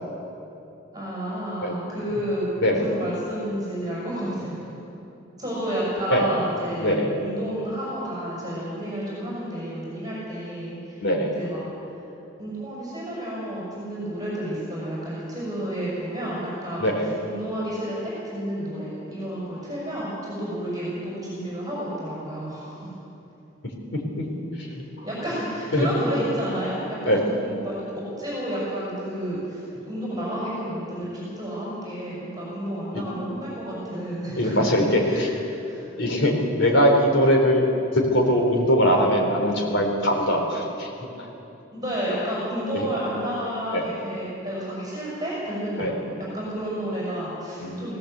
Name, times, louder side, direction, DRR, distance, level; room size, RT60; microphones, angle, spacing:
voice 1, 0.9-4.7 5.4-11.0 11.3-11.6 12.4-16.8 17.2-22.9 25.0-35.8 41.7-46.1 46.3-48.0, equal, 20° right, -7 dB, 6.4 m, -31 dB
voice 2, 6.8-7.1 11.0-11.3 16.8-17.1 23.9-24.2 24.7-24.8 25.7-25.9 27.1-27.2 29.3-29.4 29.8-29.9 31.0-31.1 32.9-33.0 34.4-35.3 36.0-36.3 36.6-37.7 37.9-40.9 41.2-41.3 42.7-42.9 43.7-43.8 45.8-45.9 47.6-47.9, equal, 80° left, 0 dB, 4.2 m, -21 dB
18.5 x 17.5 x 8.3 m, 2.8 s
head